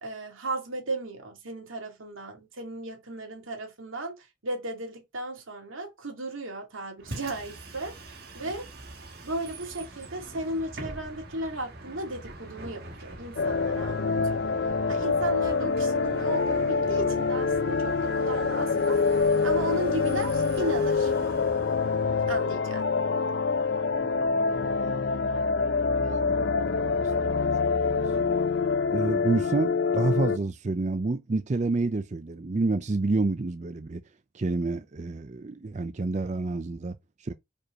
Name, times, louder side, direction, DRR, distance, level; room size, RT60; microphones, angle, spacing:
voice 1, 0.0-8.7 9.2-14.4 14.9-19.0 19.4-21.1 22.3-22.9, right 1 dB, 85° right, 2.4 m, -35 dB
Bus, 7.0-22.4, right 2 dB, 50° right, 1.5 m, -43 dB
sound 1, 13.4-30.4, left 4 dB, 60° left, 0.5 m, -26 dB
voice 2, 24.0-27.6 27.9-28.3 28.9-34.0 34.3-37.3, right 3 dB, 35° right, 0.4 m, -30 dB
5.0 x 4.5 x 4.8 m
head